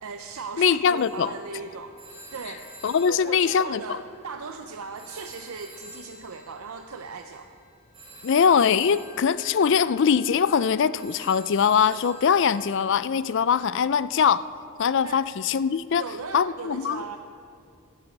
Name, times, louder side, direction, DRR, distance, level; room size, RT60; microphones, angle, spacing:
voice 1, 0.0-2.0 2.3-2.7 3.1-7.5 15.0-15.2 16.0-17.2, right 4 dB, 75° right, 6 dB, 0.6 m, -37 dB
voice 2, 0.6-1.3 2.8-4.0 8.2-14.4 14.8-16.1 16.3-17.0, left 7 dB, 55° left, 16 dB, 0.4 m, -22 dB
Telephone, 1.0-4.6 4.9-12.9, equal, 25° right, 4.2 m, -49 dB
16.5 x 12.0 x 5.3 m, 2.4 s
head